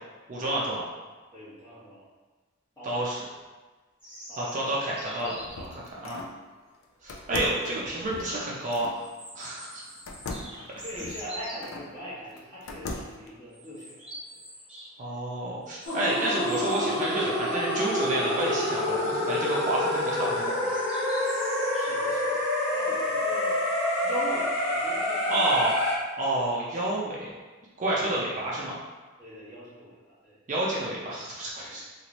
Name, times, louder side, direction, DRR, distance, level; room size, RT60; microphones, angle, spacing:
voice 1, 0.3-0.8 2.8-3.2 4.4-6.2 7.0-9.0 9.3-9.8 15.0-20.8 25.3-25.7 26.2-27.3 27.8-28.8 30.5-31.8, right 1 dB, 35° right, -5 dB, 0.5 m, -29 dB
voice 2, 1.3-2.0 2.8-3.1 4.3-4.6 4.9-5.3 6.0-6.1 10.8-14.4 21.7-22.4 22.7-23.6 24.0-25.7 27.9-28.1 29.2-30.4 31.7-31.8, equal, 20° left, -10 dB, 1.1 m, -41 dB
sound 1, 4.0-5.7 7.3-7.4 7.7-7.8 8.9-11.6 12.3-12.6 12.9-13.0 13.5-14.9 15.2-17.5 17.8-17.9 18.3-18.8 19.3-19.6 20.5-21.9, right 1 dB, 5° right, 0.8 m, -45 dB
sound 2, 5.0-6.4 7.1-9.0 10.1-11.9 12.4-13.3, left 3 dB, 75° left, 0.4 m, -39 dB
sound 3, 15.8-26.0, left 1 dB, 55° left, 0.7 m, -27 dB
2.9 x 2.5 x 2.9 m, 1.3 s
head